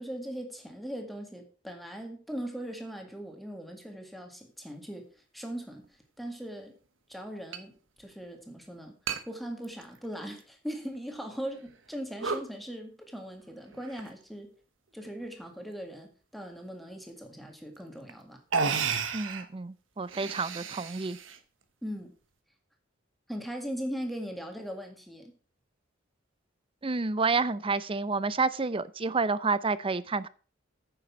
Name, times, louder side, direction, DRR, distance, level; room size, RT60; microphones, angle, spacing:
voice 1, 0.0-6.7 7.1-9.0 9.3-14.5 14.9-18.4 21.8-22.2 23.3-25.4, equal, ahead, 4 dB, 1.9 m, -39 dB
sound 1, 5.8-5.9 7.5-7.6 8.0-8.1 9.1-9.2 9.6-10.4 10.9-11.0 11.7-11.9 12.2-12.5 13.7-14.2 15.0-15.4 17.3-17.4 18.1-18.2 18.5-19.5 20.0-21.4, right 5 dB, 80° right, 1.1 m, -33 dB
voice 2, 19.1-21.2 26.8-30.3, right 4 dB, 25° right, 17 dB, 0.5 m, -29 dB
9.5 x 6.9 x 5.9 m, 0.38 s
head